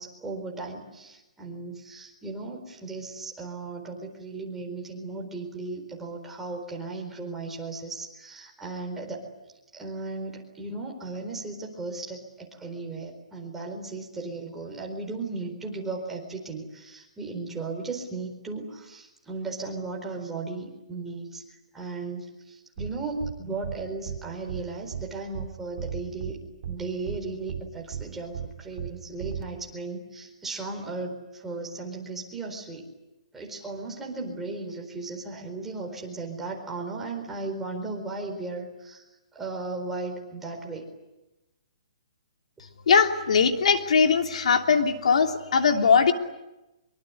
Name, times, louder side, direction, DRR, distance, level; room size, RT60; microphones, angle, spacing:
voice 1, 0.0-9.2 9.7-21.4 21.7-26.4 26.7-32.9 33.3-39.0 39.3-40.9, right 3 dB, 5° right, 0 dB, 4.3 m, -36 dB
sound 1, 22.8-22.9 23.2-23.3 23.6-23.8 24.1-24.2 24.5-24.6 24.9-25.0 25.3-25.5 25.8-26.3 26.6-26.8 27.1-27.2 27.5-27.6 27.9-28.0 28.3-28.5 28.8-28.9 29.2-29.4, right 8 dB, 55° right, 2.4 m, -34 dB
voice 2, 42.9-46.1, left 6 dB, 70° left, 4 dB, 3.0 m, -20 dB
25.0 x 24.5 x 9.7 m, 0.97 s
hypercardioid pair, 165°, 4 cm